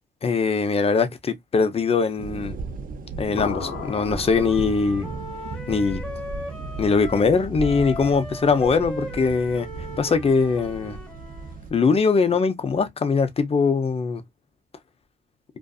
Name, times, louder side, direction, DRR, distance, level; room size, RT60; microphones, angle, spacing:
voice 1, 0.2-2.6 3.2-5.1 5.7-6.0 6.8-9.7 10.0-11.0 11.7-14.2, left 5 dB, 30° left, 0.6 m, -21 dB
sound 1, 2.2-11.7, right 4 dB, 45° right, 0.7 m, -36 dB
sound 2, 3.4-5.1, left 6 dB, 90° left, 0.9 m, -35 dB
Wind instrument woodwind instrument, 3.5-7.3 7.6-11.6, left 1 dB, 5° left, 1.2 m, -38 dB
2.5 x 2.5 x 2.3 m
cardioid pair, 90°, 20 cm